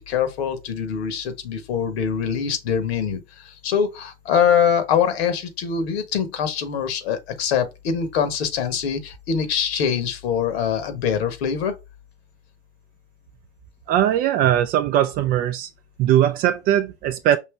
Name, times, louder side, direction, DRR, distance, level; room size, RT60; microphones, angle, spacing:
voice 1, 0.1-11.7, left 7 dB, 60° left, 1.4 m, -23 dB
voice 2, 13.9-15.7 16.0-17.4, right 11 dB, 25° right, 0.4 m, -20 dB
5.5 x 2.9 x 3.3 m
hypercardioid pair, 110°, 35 cm